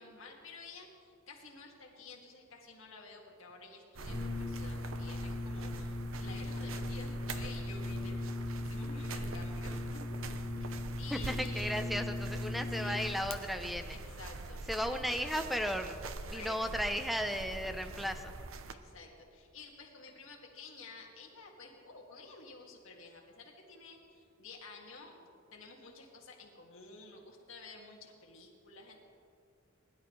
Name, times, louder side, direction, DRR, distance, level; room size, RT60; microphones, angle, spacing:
voice 1, 0.0-9.8 10.4-10.7 11.0-11.8 12.7-13.0 13.9-14.6 14.9-15.3 16.3-17.1 17.5-17.7 18.7-29.0, left 3 dB, 70° left, 0 dB, 2.1 m, -51 dB
sound 1, 3.9-18.7, right 3 dB, 75° right, 0.7 m, -44 dB
Brass instrument, 4.0-13.4, left 2 dB, 30° left, 0.9 m, -39 dB
voice 2, 11.1-14.0 14.7-18.3, equal, ahead, 7 dB, 0.6 m, -35 dB
20.5 x 11.5 x 3.2 m, 2.4 s
head